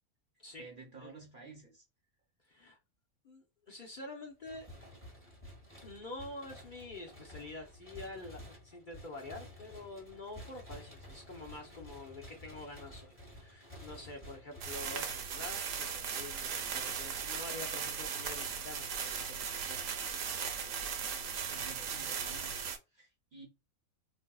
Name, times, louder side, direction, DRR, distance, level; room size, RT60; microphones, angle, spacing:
voice 1, 0.6-1.8 21.5-23.4, right 3 dB, 45° right, 0.7 m, -52 dB
voice 2, 2.4-2.8 3.2-4.7 5.8-19.8, left 2 dB, 50° left, 0.6 m, -47 dB
sound 1, 4.4-15.6, equal, 10° left, 0.9 m, -52 dB
sound 2, 14.6-22.8, right 6 dB, 65° right, 0.9 m, -37 dB
3.5 x 2.7 x 2.2 m
omnidirectional pair, 1.6 m